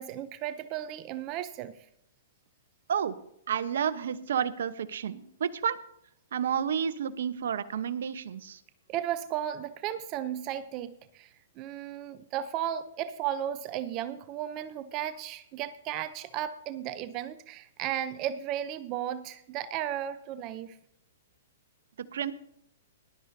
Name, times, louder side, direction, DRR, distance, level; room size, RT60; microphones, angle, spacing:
voice 1, 0.0-1.9 8.9-20.8, right 11 dB, 35° right, 12 dB, 0.6 m, -35 dB
voice 2, 3.5-5.8 6.3-8.6 22.1-22.3, right 8 dB, 70° right, 12 dB, 0.9 m, -30 dB
20.0 x 12.0 x 2.7 m, 0.73 s
hypercardioid pair, 130°, 0 cm